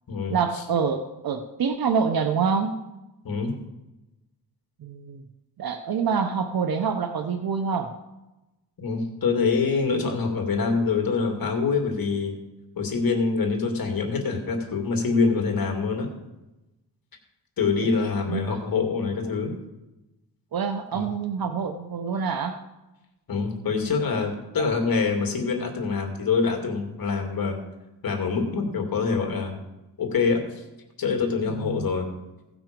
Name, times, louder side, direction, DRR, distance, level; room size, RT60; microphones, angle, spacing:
voice 1, 0.3-2.7 4.8-5.2 5.6-7.9 18.0-18.6 19.4-19.6 20.5-22.6 24.6-24.7 31.6-31.9, right 6 dB, 55° right, 8 dB, 0.9 m, -26 dB
voice 2, 8.8-12.3 12.8-16.1 17.6-19.5 20.9-21.1 23.3-27.6 28.0-29.6 30.0-30.6 31.0-32.1, left 4 dB, 55° left, 3 dB, 2.5 m, -25 dB
16.0 x 6.1 x 5.2 m, 1.0 s
cardioid pair, 95°, 42 cm